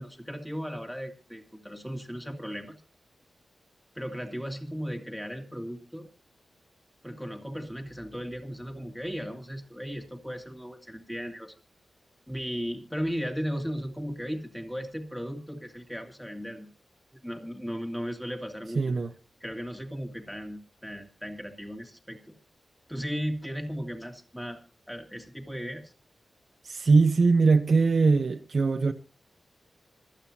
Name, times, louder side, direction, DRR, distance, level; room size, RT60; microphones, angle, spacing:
voice 1, 0.0-2.8 3.9-6.1 7.0-11.5 12.3-16.7 17.1-18.9 19.4-22.2 22.9-24.6 24.9-25.9, equal, ahead, 2.5 m, -36 dB
voice 2, 18.8-19.1 26.6-28.9, right 4 dB, 50° right, 0.9 m, -21 dB
26.5 x 9.1 x 2.9 m
wide cardioid pair, 135°, 0 cm